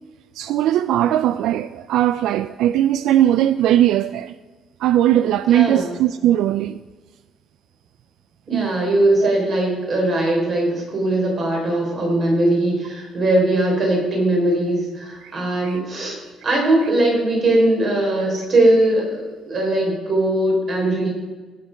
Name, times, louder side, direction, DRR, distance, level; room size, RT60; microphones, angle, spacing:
voice 1, 0.3-4.3 4.8-6.8 8.5-8.8 9.2-9.3 15.2-15.8, right 12 dB, 80° right, 0.3 m, -19 dB
voice 2, 5.5-5.9 8.5-21.1, right 1 dB, 40° right, 3.7 m, -20 dB
18.0 x 6.6 x 5.1 m
cardioid pair, 165°, 0 cm